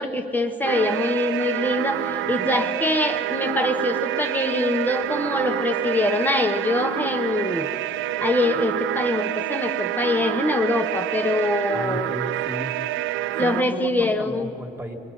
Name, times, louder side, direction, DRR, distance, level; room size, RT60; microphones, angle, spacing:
voice 1, 0.0-7.7 8.2-12.1 13.4-14.5, left 2 dB, 10° left, 6 dB, 1.3 m, -24 dB
sound 1, 0.6-13.6, right 14 dB, 80° right, 0.4 m, -27 dB
voice 2, 2.2-2.5 11.7-12.7 13.4-15.0, equal, 10° right, 2 dB, 2.1 m, -34 dB
24.5 x 21.5 x 5.4 m, 2.9 s
cardioid pair, 90°, 20 cm